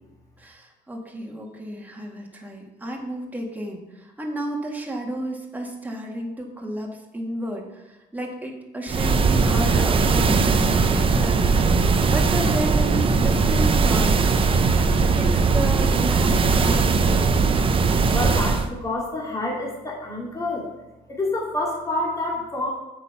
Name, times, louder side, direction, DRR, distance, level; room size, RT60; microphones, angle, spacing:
voice 1, 0.4-11.5 12.1-14.2 15.2-17.5, right 1 dB, 10° right, 0 dB, 1.8 m, -32 dB
sound 1, 8.9-18.7, right 4 dB, 30° right, 0.8 m, -19 dB
voice 2, 18.1-20.7 21.1-22.7, left 2 dB, 20° left, -3 dB, 2.4 m, -27 dB
8.2 x 6.5 x 5.7 m, 1.0 s
cardioid pair, 110°, 17 cm